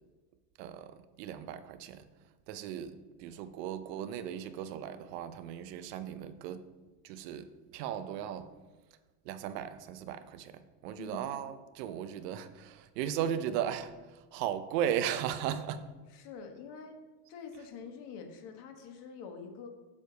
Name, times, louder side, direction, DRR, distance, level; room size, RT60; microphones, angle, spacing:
voice 1, 0.6-2.0 2.5-6.7 7.0-8.5 9.3-13.9 14.3-15.9, right 9 dB, 75° right, 0.8 m, -36 dB
voice 2, 11.0-11.3 16.1-17.0 17.3-19.7, left 5 dB, 55° left, 1.4 m, -46 dB
7.4 x 6.6 x 4.0 m
supercardioid pair, 145°, 49 cm